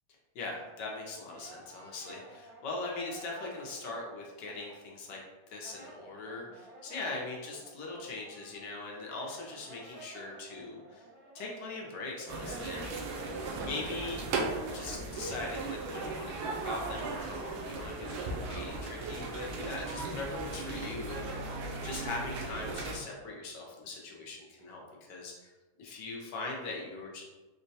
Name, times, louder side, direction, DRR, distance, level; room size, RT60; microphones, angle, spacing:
voice 1, 0.3-5.2 5.5-11.0 11.3-13.3 13.6-14.2 14.7-25.5 25.8-27.2, left 3 dB, 70° left, -1 dB, 1.2 m, -41 dB
Brass instrument, 0.7-5.2 5.4-17.6, right 2 dB, 70° right, 1.5 m, -54 dB
sound 1, 12.3-23.0, right 3 dB, 90° right, 1.5 m, -37 dB
4.5 x 2.1 x 2.7 m, 1.2 s
omnidirectional pair, 2.2 m